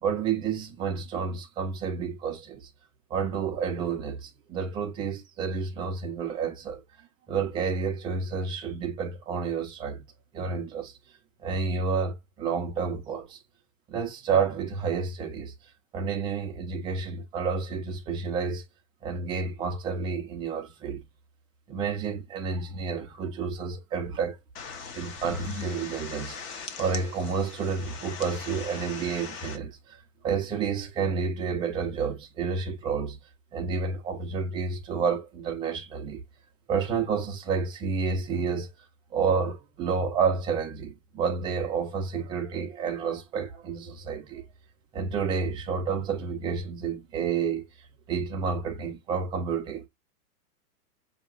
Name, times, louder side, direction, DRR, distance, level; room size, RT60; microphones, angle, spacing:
voice 1, 0.0-2.7 3.1-6.8 7.3-10.0 10.3-10.9 11.4-13.4 13.9-15.5 15.9-18.6 19.0-21.0 21.7-24.4 24.9-26.4 26.8-30.0 30.2-33.2 33.5-36.2 36.7-38.7 39.1-44.4 44.9-47.7 48.1-49.9, right 5 dB, 10° right, 0.4 m, -30 dB
sound 1, 24.6-29.6, left 5 dB, 25° left, 0.7 m, -40 dB
5.6 x 2.8 x 2.4 m
hypercardioid pair, 145°, 46 cm